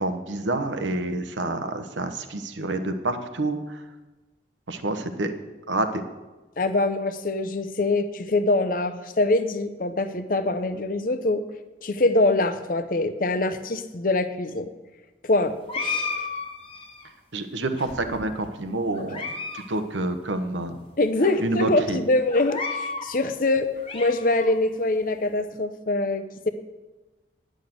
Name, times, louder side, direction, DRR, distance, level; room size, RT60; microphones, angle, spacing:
voice 1, 0.0-3.8 4.7-5.3 5.7-6.0 17.3-19.3 19.5-20.8 21.4-22.0, right 2 dB, 85° right, 8 dB, 1.1 m, -28 dB
voice 2, 6.6-11.4 11.8-14.7 15.2-16.3 21.0-26.5, left 2 dB, 45° left, 11 dB, 0.7 m, -24 dB
sound 1, 15.7-17.1 17.8-18.5 18.9-19.6 19.9-20.0 20.7-20.8 21.2-21.3 22.3-23.1 23.6-24.5, left 4 dB, 30° left, 1.3 m, -33 dB
10.5 x 6.5 x 7.9 m, 1.2 s
head